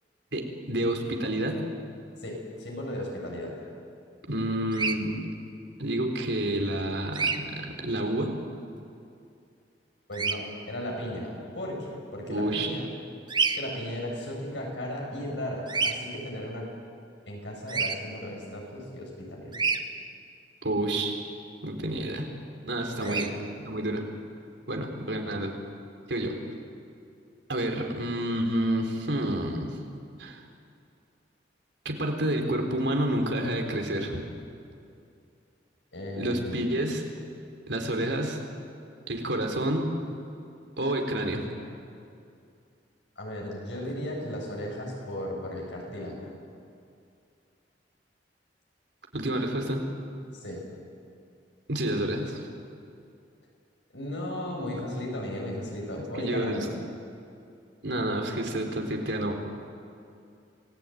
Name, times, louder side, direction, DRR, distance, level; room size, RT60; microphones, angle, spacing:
voice 1, 0.3-1.6 4.3-5.2 5.8-8.4 12.3-12.7 20.6-21.1 21.6-22.3 22.7-23.3 23.6-24.0 24.7-25.6 26.1-26.4 27.5-29.8 30.2-30.4 31.9-34.2 36.2-37.0 37.7-38.4 39.1-39.9 40.8-41.4 49.1-49.8 51.7-52.5 54.7-54.8 56.2-56.7 57.8-59.4, right 1 dB, 70° right, 3 dB, 3.8 m, -29 dB
voice 2, 2.2-3.5 10.1-12.9 13.5-16.7 17.3-19.6 23.0-23.2 35.9-36.8 43.2-46.3 50.3-50.6 53.9-56.7, left 1 dB, 85° left, -1 dB, 7.5 m, -35 dB
Bird vocalization bird call bird song, 4.7-5.0 7.1-7.4 10.1-10.4 13.3-13.6 15.7-15.9 17.7-18.0 19.5-19.8 23.0-23.3, right 4 dB, 25° right, 1.3 m, -27 dB
27.0 x 19.5 x 9.3 m, 2.5 s
head